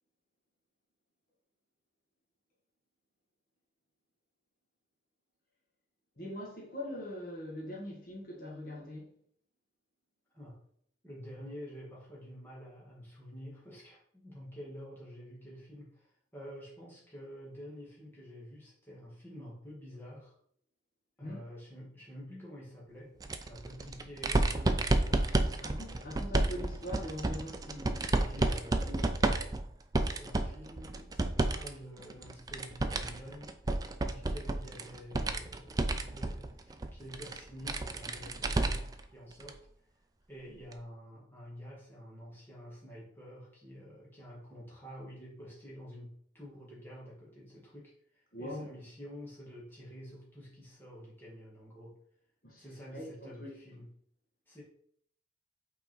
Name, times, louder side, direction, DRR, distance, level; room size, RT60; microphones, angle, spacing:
voice 1, 6.2-9.1 21.2-21.4 25.1-25.2 25.5-28.6 28.9-29.1 48.3-48.7 52.4-52.6 52.9-53.5, left 1 dB, 50° left, -4 dB, 1.6 m, -42 dB
voice 2, 11.0-20.3 21.2-25.3 28.2-29.0 30.0-33.5 34.1-39.6 40.3-52.0 52.6-53.9 54.5-54.6, equal, 10° left, -6 dB, 2.2 m, -49 dB
sound 1, 23.2-31.7 32.0-39.0 39.4-39.5 40.7-40.8, right 2 dB, 20° right, 0.4 m, -31 dB
5.8 x 4.2 x 4.5 m, 0.64 s
head